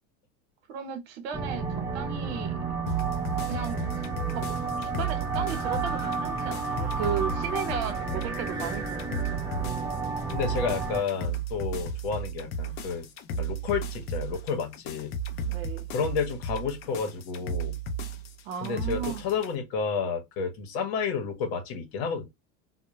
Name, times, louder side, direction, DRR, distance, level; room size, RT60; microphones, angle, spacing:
voice 1, 0.7-1.7 1.9-2.7 3.5-3.9 4.3-4.4 4.8-8.8 9.3-9.5 15.5-15.9 18.4-19.2, right 8 dB, 90° right, 0.8 m, -35 dB
sound 1, 1.3-11.0, right 4 dB, 10° right, 0.8 m, -31 dB
sound 2, 2.9-19.5, right 3 dB, 45° left, 0.5 m, -34 dB
voice 2, 10.3-13.1 13.4-15.1 15.9-17.8 18.6-22.3, left 5 dB, 80° left, 0.9 m, -31 dB
2.2 x 2.1 x 2.9 m
supercardioid pair, 135°, 31 cm